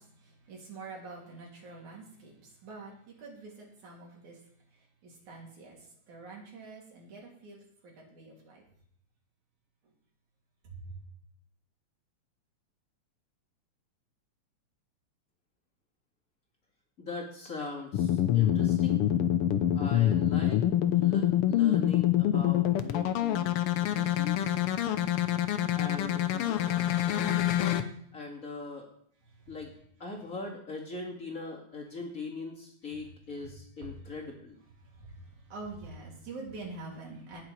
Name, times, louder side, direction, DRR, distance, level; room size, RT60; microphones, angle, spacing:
voice 1, 0.0-4.4 5.0-8.6 10.6-11.0 29.3-29.6 30.0-30.1 33.8-33.9 34.8-37.4, right 3 dB, 80° right, -2 dB, 4.6 m, -46 dB
voice 2, 17.0-19.1 19.7-20.6 20.9-24.6 25.8-26.6 28.1-28.9 29.5-29.7 30.0-34.6, left 3 dB, 30° left, -1 dB, 2.3 m, -41 dB
sound 1, 17.9-27.8, left 12 dB, 75° left, 1.3 m, -26 dB
18.5 x 7.0 x 4.5 m, 0.66 s
omnidirectional pair, 3.4 m